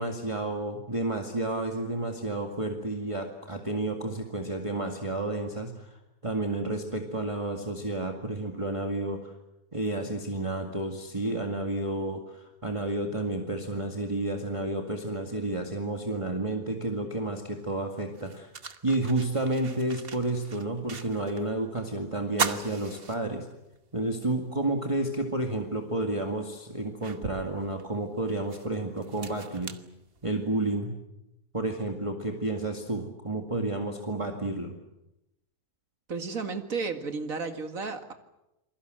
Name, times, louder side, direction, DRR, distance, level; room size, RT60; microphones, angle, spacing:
voice 1, 0.0-6.0 6.2-9.3 9.7-18.5 18.8-23.5 23.9-29.8 30.2-31.0 31.5-34.7, right 2 dB, 20° right, 2 dB, 2.1 m, -31 dB
sound 1, 17.5-17.6 18.1-21.5 21.8-21.9 22.3-23.8 24.2-24.3 25.7-25.8 26.4-30.6, right 5 dB, 40° right, 1.4 m, -38 dB
voice 2, 36.1-38.1, right 4 dB, 60° right, 7 dB, 2.5 m, -33 dB
28.5 x 21.5 x 7.8 m, 0.91 s
omnidirectional pair, 1.7 m